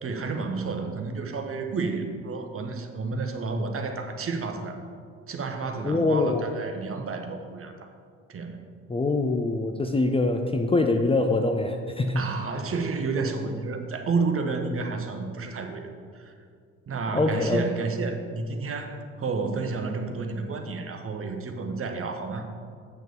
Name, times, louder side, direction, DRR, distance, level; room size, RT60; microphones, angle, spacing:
voice 1, 0.0-4.8 5.3-7.9 8.3-8.6 12.1-16.3 16.9-22.4, right 4 dB, 35° right, 5 dB, 1.3 m, -31 dB
voice 2, 5.8-6.4 8.9-12.2 17.1-17.7, left 2 dB, 15° left, 5 dB, 0.7 m, -24 dB
8.1 x 6.5 x 6.8 m, 2.2 s
figure-of-eight pair, 55°, 38 cm